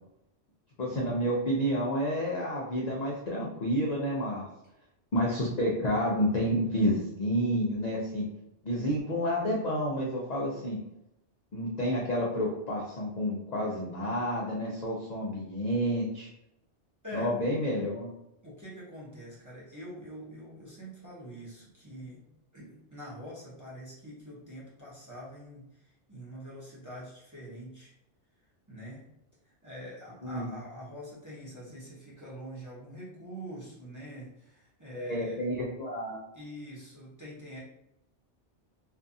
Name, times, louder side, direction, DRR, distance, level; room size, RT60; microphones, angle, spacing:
voice 1, 0.8-4.5 5.1-8.3 8.6-10.8 11.5-16.3 17.1-18.1 30.2-30.5 34.9-36.2, equal, 60° left, -3 dB, 0.4 m, -29 dB
voice 2, 18.4-22.2 22.5-27.9 28.7-29.0 29.4-35.4 36.3-37.6, equal, 20° right, -8 dB, 0.6 m, -45 dB
2.5 x 2.4 x 2.6 m, 0.83 s
omnidirectional pair, 1.2 m